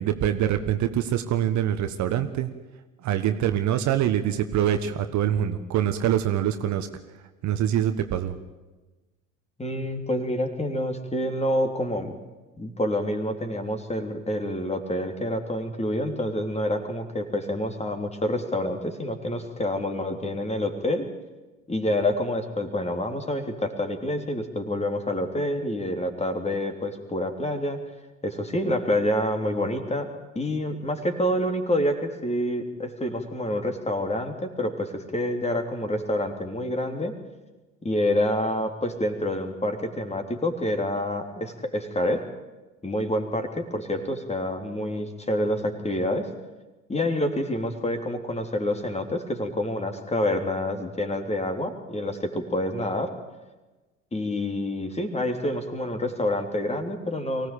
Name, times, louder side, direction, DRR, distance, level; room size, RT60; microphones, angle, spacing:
voice 1, 0.0-2.5 3.0-6.9 7.4-8.3, right 10 dB, 45° right, 9 dB, 1.5 m, -24 dB
voice 2, 9.6-12.1 12.6-21.1 21.7-27.8 28.2-30.1 30.4-37.1 37.8-42.2 42.8-46.3 46.9-53.1 54.1-57.5, left 1 dB, 15° left, 6 dB, 3.4 m, -27 dB
24.0 x 17.0 x 8.6 m, 1.2 s
figure-of-eight pair, 60°, 39 cm